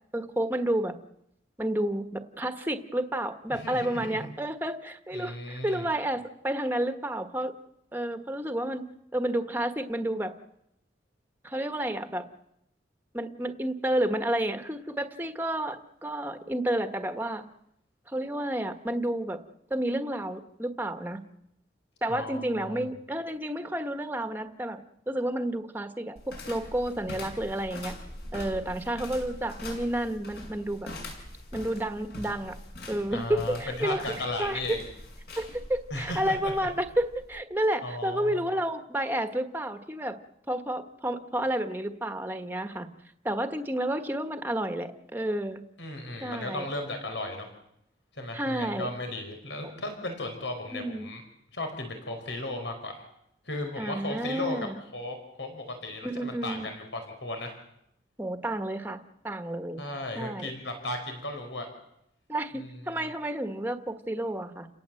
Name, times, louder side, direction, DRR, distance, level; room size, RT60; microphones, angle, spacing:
voice 1, 0.1-1.0 1.6-7.5 7.9-8.8 9.1-10.3 11.4-12.2 13.1-17.4 18.1-19.4 19.7-21.2 22.0-24.8 25.1-27.9 28.3-30.9 31.5-32.6 32.9-34.8 35.4-40.2 40.5-42.9 43.2-45.6 46.2-46.7 48.3-48.9 49.6-49.7 50.7-51.1 53.8-54.8 56.0-56.7 58.2-59.8 60.1-60.5 62.3-64.7, right 1 dB, 10° right, 8 dB, 1.4 m, -30 dB
voice 2, 3.5-4.3 5.1-5.9 22.1-22.8 33.1-34.8 35.9-36.5 37.8-38.5 45.8-47.5 48.1-51.2 51.5-53.0 53.4-54.7 54.9-57.5 59.8-61.7 62.5-62.8, left 1 dB, 90° left, 5 dB, 5.1 m, -35 dB
sound 1, 26.2-37.4, left 1 dB, 60° left, 6.7 m, -43 dB
30.0 x 18.0 x 7.7 m, 0.80 s
head